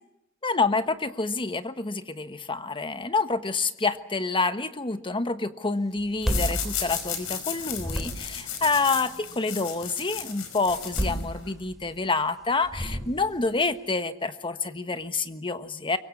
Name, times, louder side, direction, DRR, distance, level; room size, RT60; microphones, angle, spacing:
voice 1, 0.4-16.0, left 3 dB, 25° left, 10 dB, 1.3 m, -28 dB
sound 1, 6.0-7.4 7.7-8.5 10.7-11.9 12.6-13.5, equal, ahead, 4.1 m, -31 dB
sound 2, 6.2-11.5, left 8 dB, 75° left, 5.0 m, -35 dB
23.5 x 23.5 x 7.1 m, 0.83 s
head